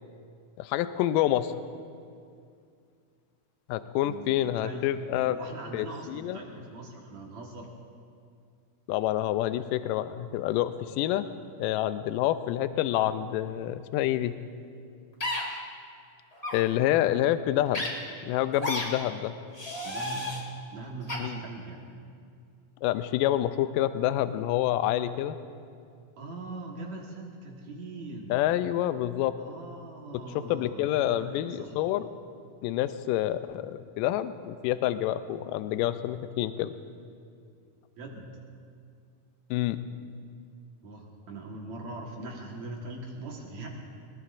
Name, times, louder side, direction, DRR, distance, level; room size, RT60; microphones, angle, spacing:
voice 1, 0.6-1.5 3.7-5.4 5.7-6.4 8.9-11.3 11.6-14.4 16.5-17.8 18.2-19.4 21.2-21.4 22.8-25.4 28.3-29.4 30.1-30.2 30.5-32.1 32.6-36.7 39.5-39.8, left 13 dB, 80° left, 11 dB, 2.1 m, -27 dB
voice 2, 4.0-4.9 5.3-7.7 19.8-20.4 20.7-21.8 26.1-28.5 29.4-31.7 38.0-38.3 40.8-43.7, right 2 dB, 55° right, -1 dB, 2.6 m, -41 dB
sound 1, 15.2-15.4 16.4-16.6 17.7-17.9 18.6-18.8 19.5-20.4 21.1-21.2, left 1 dB, 35° left, 0.5 m, -32 dB
21.5 x 20.5 x 2.6 m, 2.3 s
omnidirectional pair, 4.1 m